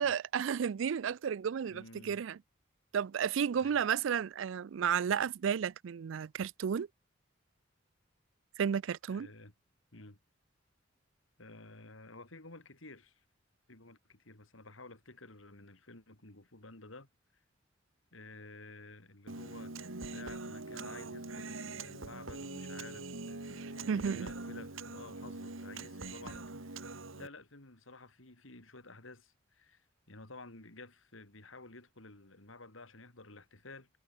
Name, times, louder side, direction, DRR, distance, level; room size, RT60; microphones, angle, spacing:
voice 1, 0.0-2.4 2.9-6.9 8.6-9.3 23.6-24.3, right 7 dB, 70° right, 0.4 m, -32 dB
voice 2, 1.7-2.2 3.6-3.8 9.1-9.5 9.9-10.2 11.4-13.2 13.7-17.1 18.1-19.7 20.0-33.9, left 2 dB, 80° left, 3.6 m, -52 dB
Human voice, 19.3-27.3, right 3 dB, 85° right, 2.3 m, -43 dB
head